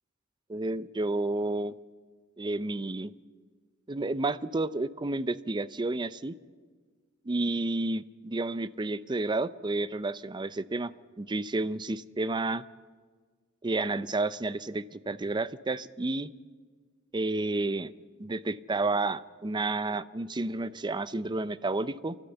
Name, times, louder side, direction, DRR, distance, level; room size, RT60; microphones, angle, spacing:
voice 1, 0.5-1.8 2.4-3.1 3.9-6.4 7.2-12.6 13.6-16.3 17.1-17.9 18.2-22.2, right 2 dB, 20° right, 15 dB, 0.5 m, -31 dB
29.5 x 12.0 x 8.0 m, 1.5 s
head